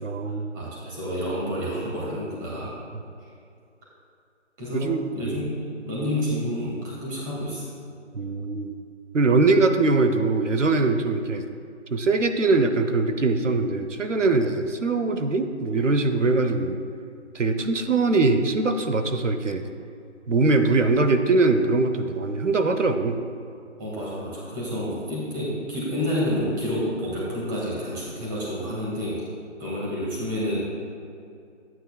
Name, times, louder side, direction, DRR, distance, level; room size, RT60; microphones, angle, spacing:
voice 1, 0.0-0.5 4.7-5.4 8.1-8.7 9.1-11.4 11.9-16.8 17.3-19.7 20.3-23.2, right 3 dB, 80° right, 8 dB, 0.9 m, -22 dB
voice 2, 0.5-2.8 4.6-4.9 5.1-7.7 23.8-29.1 29.6-30.6, equal, 15° right, -7 dB, 1.9 m, -29 dB
12.5 x 8.9 x 2.3 m, 2.5 s
figure-of-eight pair, 155°, 36 cm